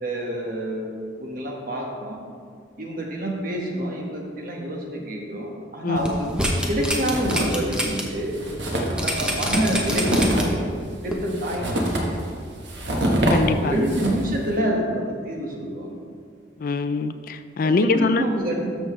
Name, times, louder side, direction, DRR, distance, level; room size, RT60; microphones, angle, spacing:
voice 1, 0.0-2.2 2.8-8.4 9.0-10.7 11.0-12.0 13.6-16.0 17.6-18.8, right 1 dB, 50° right, -1 dB, 1.4 m, -27 dB
sound 1, 6.0-8.0 8.4-8.5 9.0-10.6 11.1-11.2, equal, 5° right, 0.9 m, -26 dB
sound 2, 6.8-7.7 8.0-8.1 8.3-14.4, right 1 dB, 70° right, 1.4 m, -25 dB
voice 2, 13.3-13.8 16.6-18.2, left 3 dB, 50° left, 10 dB, 0.3 m, -23 dB
13.0 x 6.1 x 3.2 m, 2.1 s
head